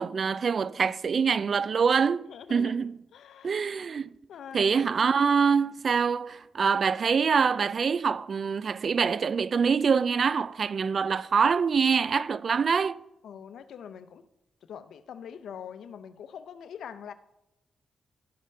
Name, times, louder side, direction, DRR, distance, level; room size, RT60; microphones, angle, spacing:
voice 1, 0.0-3.0 3.4-4.1 4.5-13.0, right 6 dB, 55° right, 0.4 m, -25 dB
voice 2, 2.3-2.7 3.1-3.6 4.3-4.7 13.2-14.3 14.6-17.1, left 8 dB, 75° left, 0.7 m, -43 dB
13.0 x 5.1 x 5.5 m
cardioid pair, 65°, 0 cm